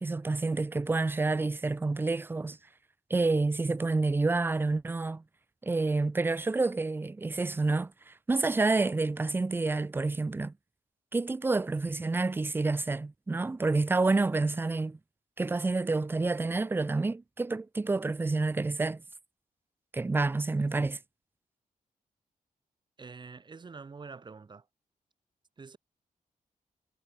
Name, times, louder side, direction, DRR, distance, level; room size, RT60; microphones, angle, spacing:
voice 1, 0.0-2.6 3.1-5.2 5.6-10.5 11.1-15.0 15.4-19.0 19.9-21.0, right 3 dB, 15° right, 0.5 m, -28 dB
voice 2, 23.0-24.7 25.6-25.8, right 4 dB, 30° right, 4.4 m, -46 dB
wide cardioid pair, 180°, 15 cm